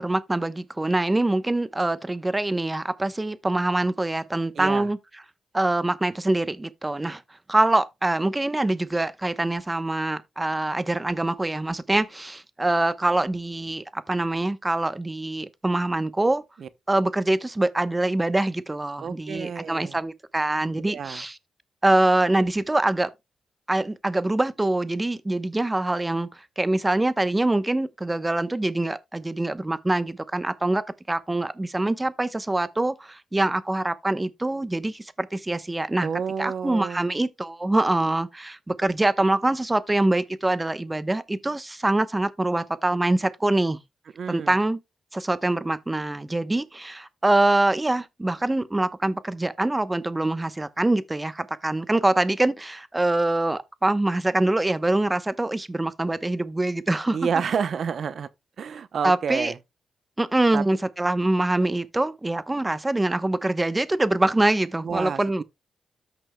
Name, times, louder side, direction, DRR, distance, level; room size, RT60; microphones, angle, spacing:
voice 1, 0.0-5.0 5.5-7.2 7.5-16.4 16.9-21.4 21.8-23.1 23.7-26.3 26.6-36.1 36.4-43.8 44.3-44.8 45.1-57.2 59.0-59.5 60.2-65.4, right 2 dB, 20° right, 0.9 m, -24 dB
voice 2, 4.5-4.9 16.6-16.7 19.0-20.0 20.9-21.2 36.0-37.0 44.2-44.6 57.1-58.3 58.6-59.6 60.5-60.6 64.8-65.4, right 6 dB, 65° right, 0.8 m, -29 dB
14.0 x 6.0 x 2.3 m
cardioid pair, 70°, 0 cm